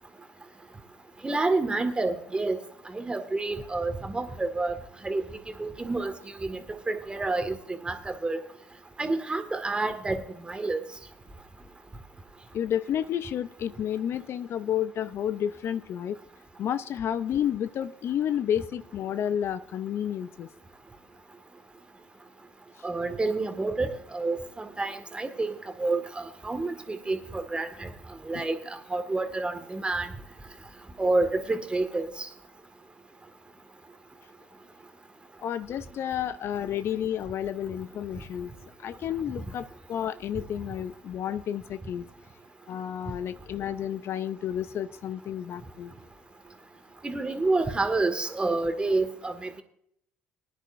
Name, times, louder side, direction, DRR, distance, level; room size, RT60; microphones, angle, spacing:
voice 1, 1.2-2.6 2.9-4.8 5.0-5.3 5.6-6.1 6.4-6.6 6.9-8.4 9.0-10.8 22.8-25.5 25.8-27.9 28.2-28.6 28.9-30.1 31.0-32.3 47.0-49.6, right 3 dB, 20° right, 7 dB, 1.8 m, -28 dB
voice 2, 12.5-16.2 16.6-20.5 28.3-28.5 35.4-38.5 38.8-42.1 42.7-45.9, left 10 dB, 55° left, 14 dB, 0.5 m, -31 dB
20.0 x 10.0 x 2.6 m, 0.70 s
hypercardioid pair, 65°, 5 cm